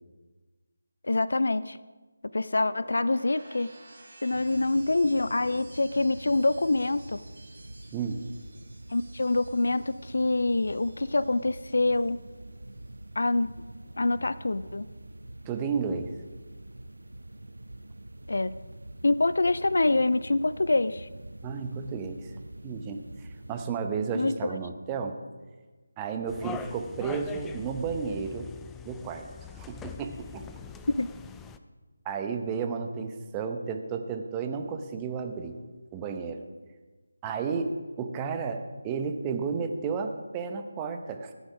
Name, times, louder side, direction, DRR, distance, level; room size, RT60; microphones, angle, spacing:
voice 1, 1.0-1.8 2.3-3.7 4.2-7.2 8.9-12.2 13.2-13.7 14.0-14.9 18.3-18.5 19.0-21.1 24.1-24.4 30.9-31.1, left 2 dB, 65° left, 16 dB, 0.4 m, -25 dB
sound 1, 2.2-12.3 12.6-13.1, right 2 dB, 45° right, 4.4 m, -54 dB
sound 2, 4.3-23.7, right 1 dB, 75° right, 0.7 m, -45 dB
voice 2, 15.5-16.2 21.4-22.4 22.6-25.2 26.0-28.5 28.8-29.3 29.5-30.5 32.0-35.6 35.9-36.4 37.2-41.3, right 5 dB, 15° right, 6 dB, 0.9 m, -32 dB
sound 3, 26.3-31.6, left 6 dB, 5° left, 0.4 m, -43 dB
14.5 x 9.4 x 5.1 m, 1.3 s
figure-of-eight pair, 160°, 0 cm